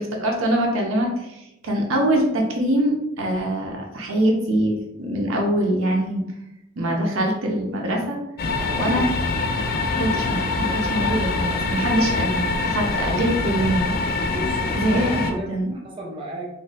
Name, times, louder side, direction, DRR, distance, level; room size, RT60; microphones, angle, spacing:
voice 1, 0.0-6.2 6.8-8.2 8.7-9.1 10.0-13.9 14.7-15.7, right 1 dB, 70° right, 0 dB, 0.7 m, -23 dB
sound 1, 8.4-15.3, left 3 dB, 45° left, 0.4 m, -24 dB
voice 2, 8.6-9.2 9.6-10.0 14.2-16.5, equal, 25° right, -3 dB, 0.6 m, -35 dB
4.0 x 2.6 x 2.5 m, 0.88 s
head